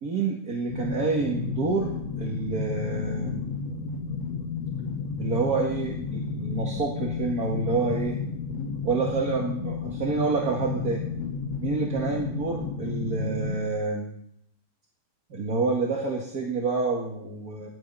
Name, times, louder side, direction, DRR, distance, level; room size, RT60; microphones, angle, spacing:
voice 1, 0.0-3.5 5.2-8.2 8.8-11.1 11.6-14.1 15.3-17.7, right 3 dB, 35° right, -2 dB, 1.8 m, -28 dB
sound 1, 0.7-13.6, left 4 dB, 55° left, 3.5 m, -32 dB
17.0 x 11.5 x 5.6 m, 0.72 s
omnidirectional pair, 3.6 m